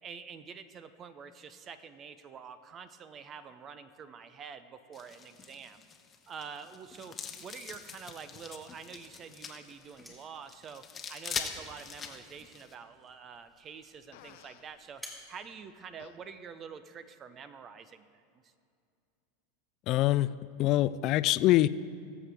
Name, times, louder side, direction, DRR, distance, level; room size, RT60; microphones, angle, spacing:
voice 1, 0.0-5.8 6.3-18.5, right 6 dB, 35° right, 12 dB, 0.7 m, -47 dB
sound 1, 4.9-12.7, left 6 dB, 25° left, 1.0 m, -43 dB
sound 2, 9.7-16.5, equal, 10° right, 2.1 m, -55 dB
Fart, 14.1-14.7 16.0-16.2, left 11 dB, 65° left, 0.7 m, -54 dB
voice 2, 19.9-20.3 20.6-21.7, left 15 dB, 50° left, 16 dB, 0.3 m, -24 dB
19.5 x 7.5 x 3.5 m, 2.4 s
hypercardioid pair, 90°, 0 cm